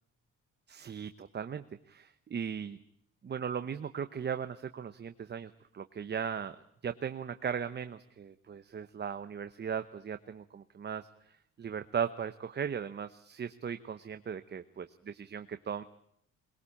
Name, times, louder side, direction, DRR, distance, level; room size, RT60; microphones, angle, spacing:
voice 1, 0.7-2.8 3.2-6.6 6.8-15.8, right 7 dB, 35° right, 10 dB, 0.9 m, -38 dB
23.0 x 21.5 x 8.6 m, 0.69 s
cardioid pair, 150°, 31 cm